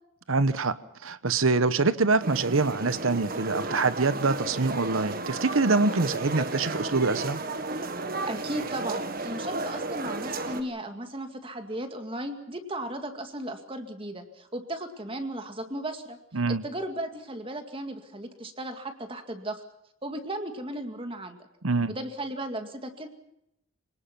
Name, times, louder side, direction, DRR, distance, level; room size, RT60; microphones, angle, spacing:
voice 1, 0.3-0.8 1.0-7.4 16.3-16.6 21.6-21.9, right 3 dB, 80° right, 14 dB, 1.1 m, -25 dB
sound 1, 2.2-10.6, right 2 dB, 45° right, 1.7 m, -33 dB
voice 2, 8.2-16.2 16.5-19.6 20.0-21.4 21.9-23.1, right 1 dB, 25° right, 6 dB, 2.1 m, -35 dB
26.5 x 19.0 x 5.9 m, 0.81 s
head